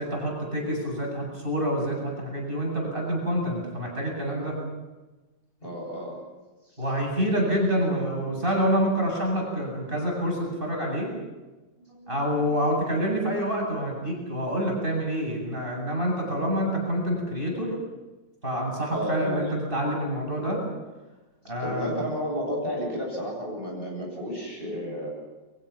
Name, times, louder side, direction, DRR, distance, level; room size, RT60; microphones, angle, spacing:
voice 1, 0.0-4.5 6.8-11.1 12.1-17.7 18.4-20.6 21.5-22.0, equal, 30° right, -1 dB, 8.3 m, -27 dB
voice 2, 5.6-6.2 6.7-6.8 11.9-12.3 18.9-19.5 21.7-25.1, equal, 30° left, -2 dB, 8.4 m, -32 dB
30.0 x 23.0 x 6.0 m, 1.2 s
omnidirectional pair, 2.0 m